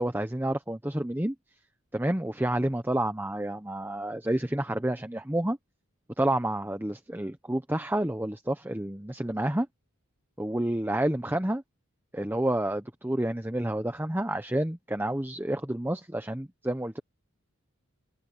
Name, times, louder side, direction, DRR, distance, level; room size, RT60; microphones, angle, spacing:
voice 1, 0.0-1.3 1.9-5.6 6.2-9.7 10.4-11.6 12.1-17.0, right 1 dB, 10° right, 0.8 m, -29 dB
head